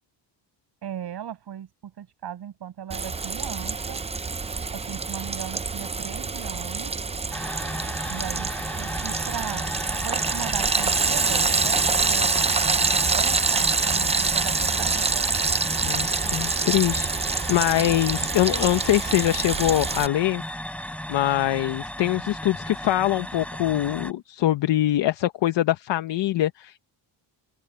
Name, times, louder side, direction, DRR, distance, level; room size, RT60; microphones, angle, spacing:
voice 1, 0.8-4.0 4.7-7.0 8.1-9.7 10.0-15.3, right 10 dB, 65° right, 6.7 m, -37 dB
Frying (food), 2.9-20.1, right 4 dB, 15° right, 0.5 m, -26 dB
sound 1, 7.3-24.1, left 1 dB, 5° left, 4.4 m, -35 dB
voice 2, 15.8-20.4 21.1-26.8, left 14 dB, 80° left, 1.0 m, -23 dB
cardioid pair, 130°, 43 cm